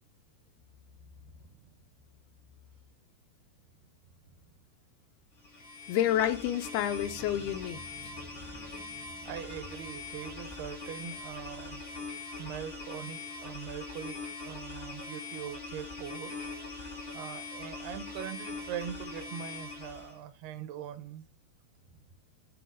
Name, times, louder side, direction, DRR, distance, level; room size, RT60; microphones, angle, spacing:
voice 1, 1.2-1.7 9.3-11.8 12.4-16.4 17.1-21.3, right 9 dB, 80° right, 2.8 m, -42 dB
sound 1, 5.4-20.2, left 3 dB, 45° left, 0.7 m, -42 dB
voice 2, 5.9-8.1, left 11 dB, 85° left, 2.5 m, -29 dB
sound 2, 6.8-12.0, right 1 dB, 35° right, 0.6 m, -53 dB
9.3 x 3.8 x 4.8 m
omnidirectional pair, 4.6 m